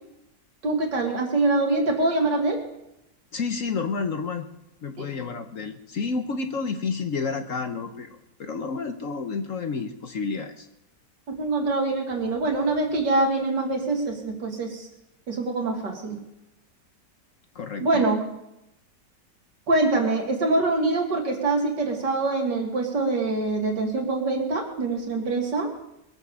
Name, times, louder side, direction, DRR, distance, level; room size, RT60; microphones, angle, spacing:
voice 1, 0.6-2.6 5.0-5.1 11.3-14.9 15.3-16.2 17.8-18.2 19.7-25.7, right 2 dB, 75° right, 1 dB, 3.0 m, -24 dB
voice 2, 3.3-4.5 4.8-10.7 17.5-18.0, left 4 dB, 55° left, 7 dB, 1.2 m, -30 dB
21.0 x 7.4 x 7.0 m, 0.85 s
omnidirectional pair, 1.9 m